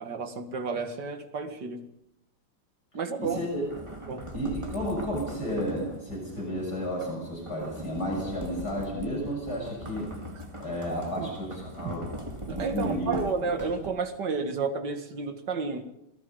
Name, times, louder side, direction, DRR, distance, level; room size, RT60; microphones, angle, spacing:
voice 1, 0.0-1.9 2.9-3.4 4.1-4.3 11.1-11.3 11.8-12.0 12.5-15.9, right 4 dB, 55° right, 2.3 m, -31 dB
voice 2, 3.2-3.7 4.3-10.1 10.6-12.1 12.5-13.1 13.4-13.5, equal, 45° left, 7.8 m, -32 dB
sound 1, 3.2-14.2, right 1 dB, 15° right, 2.1 m, -41 dB
27.5 x 18.0 x 5.4 m
omnidirectional pair, 2.3 m